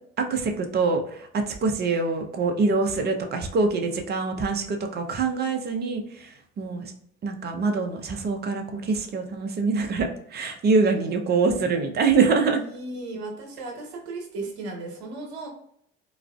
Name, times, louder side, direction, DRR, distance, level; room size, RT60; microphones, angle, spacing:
voice 1, 0.2-6.3 6.6-6.9 7.2-12.6, right 4 dB, 30° right, 4 dB, 0.6 m, -24 dB
voice 2, 12.5-15.5, right 2 dB, 75° right, 2 dB, 0.9 m, -35 dB
3.9 x 2.4 x 2.2 m, 0.68 s
figure-of-eight pair, 60°, 33 cm